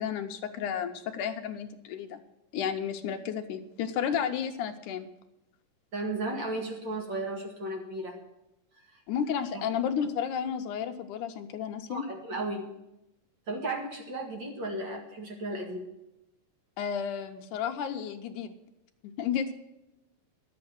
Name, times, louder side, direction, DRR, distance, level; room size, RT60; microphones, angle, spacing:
voice 1, 0.0-2.2 2.5-5.1 9.1-12.1 16.8-18.5 19.2-19.5, left 8 dB, 75° left, 6 dB, 2.3 m, -32 dB
voice 2, 5.9-8.2 8.9-9.0 9.5-9.7 11.9-12.7 13.5-15.8, right 2 dB, 40° right, 1 dB, 2.4 m, -35 dB
11.5 x 8.3 x 7.8 m, 0.89 s
omnidirectional pair, 3.8 m